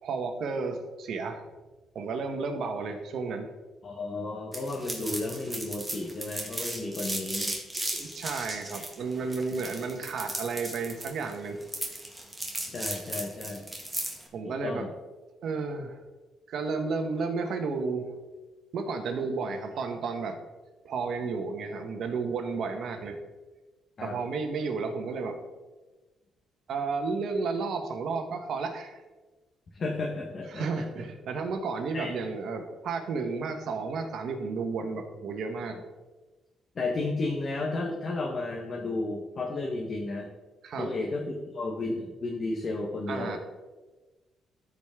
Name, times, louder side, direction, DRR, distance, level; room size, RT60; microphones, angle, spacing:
voice 1, 0.0-1.4 1.9-3.5 7.9-11.6 14.3-14.9 15.4-15.9 16.5-18.1 18.7-20.4 20.8-23.2 24.0-25.4 26.7-29.0 30.5-35.8 40.6-40.9 43.1-43.4, right 4 dB, 65° right, 5 dB, 1.3 m, -32 dB
voice 2, 3.8-7.5 12.7-13.6 14.4-14.9 24.0-24.2 29.7-31.1 31.9-32.1 36.7-40.3 40.8-43.4, left 2 dB, 45° left, 0 dB, 1.3 m, -33 dB
sound 1, 4.5-14.2, right 1 dB, 10° right, 2.0 m, -36 dB
13.5 x 5.0 x 3.7 m, 1.2 s
cardioid pair, 90°, 0 cm